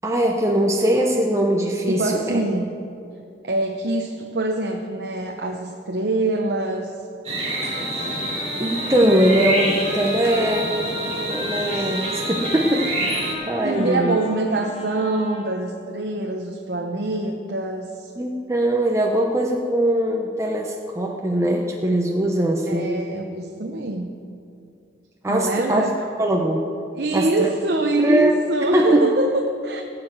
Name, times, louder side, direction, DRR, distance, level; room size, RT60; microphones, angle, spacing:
voice 1, 0.0-2.4 8.6-10.7 11.3-14.2 18.2-23.0 25.2-25.8 26.2-26.7 27.1-27.5 28.0-28.3 28.7-29.1, right 1 dB, 15° right, 0 dB, 0.8 m, -21 dB
voice 2, 1.9-2.7 3.4-6.9 13.6-18.1 22.7-24.1 25.3-26.1 27.0-29.8, right 2 dB, 65° right, 2 dB, 0.8 m, -24 dB
sound 1, 7.2-13.3, right 1 dB, 35° right, 2.6 m, -27 dB
Trumpet, 7.4-15.6, left 2 dB, 40° left, 2.3 m, -35 dB
17.0 x 6.0 x 7.8 m, 2.5 s
head